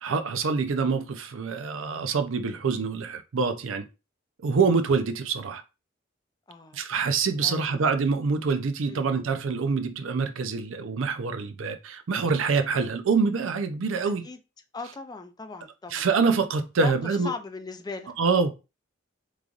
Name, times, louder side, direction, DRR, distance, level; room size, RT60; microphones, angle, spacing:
voice 1, 0.0-3.9 4.4-5.6 6.7-14.2 15.9-17.3 18.2-18.5, right 4 dB, 85° right, 0.5 m, -25 dB
voice 2, 6.5-6.9 7.4-7.9 8.9-9.1 14.2-14.4 14.7-16.1 16.8-16.9 17.2-18.1, left 3 dB, 20° left, 0.4 m, -38 dB
3.7 x 3.1 x 2.4 m
head